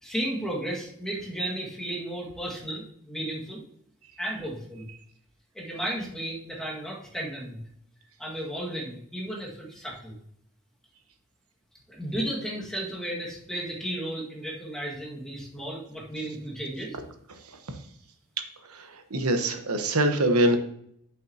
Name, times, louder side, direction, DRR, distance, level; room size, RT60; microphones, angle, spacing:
voice 1, 0.0-3.6 4.2-4.9 5.5-7.6 8.2-10.2 11.9-17.0, right 1 dB, 5° left, -3 dB, 1.8 m, -34 dB
voice 2, 18.7-20.6, right 1 dB, 90° right, 7 dB, 1.1 m, -24 dB
8.2 x 7.1 x 2.8 m, 0.69 s
head